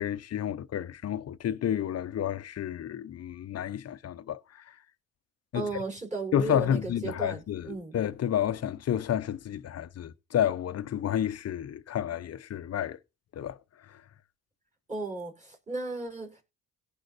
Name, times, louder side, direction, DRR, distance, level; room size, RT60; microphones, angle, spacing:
voice 1, 0.0-4.6 5.5-5.7 6.3-13.0 13.3-13.6 13.9-14.0, left 10 dB, 45° left, 0.8 m, -30 dB
voice 2, 5.5-8.0 14.9-16.4, right 3 dB, 20° right, 5.5 m, -35 dB
17.0 x 5.8 x 4.2 m
cardioid pair, 90°, 36 cm